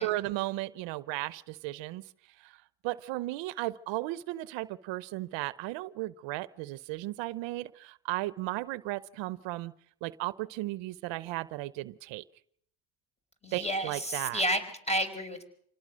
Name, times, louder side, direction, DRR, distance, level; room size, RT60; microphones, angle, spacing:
voice 1, 0.0-2.0 2.4-2.5 2.8-9.7 10.0-12.2 13.5-14.4, right 18 dB, 90° right, 18 dB, 0.8 m, -35 dB
voice 2, 13.4-15.4, equal, 15° left, 7 dB, 5.0 m, -31 dB
26.5 x 18.5 x 6.3 m, 0.66 s
supercardioid pair, 75°, 43 cm